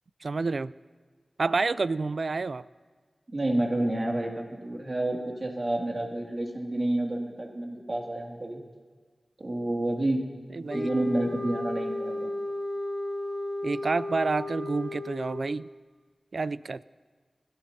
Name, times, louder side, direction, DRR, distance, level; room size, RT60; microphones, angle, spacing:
voice 1, 0.2-0.7 1.4-2.6 10.5-10.9 13.6-15.7 16.3-16.8, right 3 dB, 70° right, 17 dB, 0.3 m, -29 dB
voice 2, 3.3-8.6 9.4-10.2 10.7-12.3, right 1 dB, 50° right, 0 dB, 2.2 m, -29 dB
sound 1, 10.7-15.6, left 2 dB, 30° left, 1.7 m, -34 dB
22.0 x 13.5 x 2.7 m, 1.5 s
wide cardioid pair, 50°, 0 cm